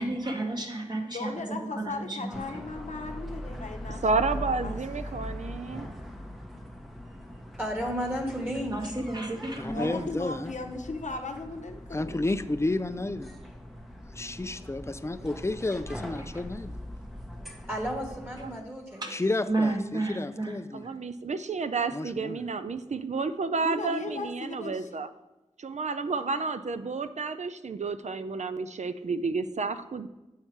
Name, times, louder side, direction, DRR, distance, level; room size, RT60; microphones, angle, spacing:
voice 1, 0.0-2.6 8.7-9.9 16.0-16.2 18.9-19.1 19.5-20.9, right 2 dB, 35° right, 1 dB, 1.4 m, -32 dB
voice 2, 1.1-4.8 9.7-12.2 23.6-25.0 26.1-26.3, left 3 dB, 70° left, 4 dB, 0.8 m, -37 dB
sound 1, 2.3-18.6, left 1 dB, ahead, 0.9 m, -41 dB
voice 3, 4.0-5.9 9.8-10.1 20.7-25.1 25.6-30.1, right 4 dB, 65° right, 11 dB, 0.4 m, -31 dB
voice 4, 7.6-8.9 17.7-19.1 20.9-21.0, equal, 15° right, 0 dB, 1.5 m, -33 dB
voice 5, 9.6-10.5 11.9-13.4 14.1-16.8 19.1-20.9 21.9-22.4, left 2 dB, 20° left, 11 dB, 0.4 m, -31 dB
7.3 x 5.6 x 4.6 m, 1.0 s
wide cardioid pair, 60°, 13 cm